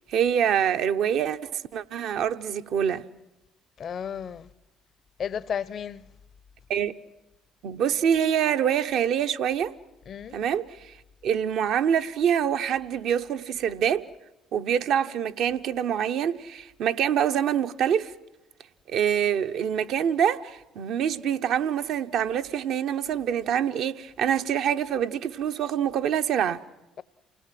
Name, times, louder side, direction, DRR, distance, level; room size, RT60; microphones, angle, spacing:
voice 1, 0.1-3.1 6.7-6.9 7.6-9.7 10.3-10.9 11.2-14.0 14.5-18.1 18.9-26.6, right 9 dB, 65° right, 0.9 m, -25 dB
voice 2, 3.8-4.5 5.2-6.0 10.1-10.4, left 8 dB, 50° left, 0.7 m, -33 dB
28.5 x 18.5 x 7.6 m
hypercardioid pair, 60°, 0 cm